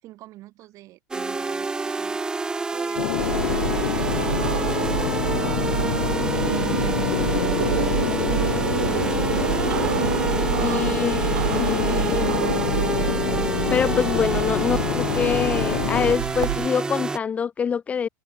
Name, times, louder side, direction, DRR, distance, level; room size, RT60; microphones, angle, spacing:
voice 1, 0.0-2.2 2.7-5.6 6.4-8.7 14.2-14.3, right 16 dB, 30° right, 6.1 m, -46 dB
sound 1, 1.1-17.2, right 3 dB, 5° right, 1.3 m, -28 dB
sound 2, 3.0-16.2, left 20 dB, 55° left, 0.8 m, -27 dB
sound 3, 3.2-16.7, right 17 dB, 65° right, 3.5 m, -28 dB
voice 2, 10.6-11.2 11.5-12.3 13.7-18.1, left 7 dB, 15° left, 0.7 m, -25 dB
open air
supercardioid pair, 165°, 10 cm